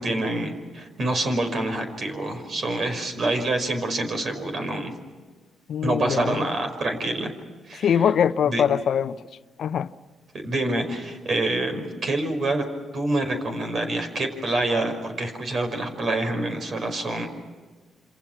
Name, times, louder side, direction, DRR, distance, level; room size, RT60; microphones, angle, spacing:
voice 1, 0.0-4.9 5.8-7.3 7.7-8.1 8.4-8.6 10.4-12.6 12.9-17.3, right 2 dB, 55° right, 5.4 m, -26 dB
voice 2, 5.7-6.5 7.7-9.2 9.6-9.9, left 8 dB, 65° left, 0.7 m, -23 dB
27.5 x 27.0 x 6.0 m
hypercardioid pair, 50°, 0 cm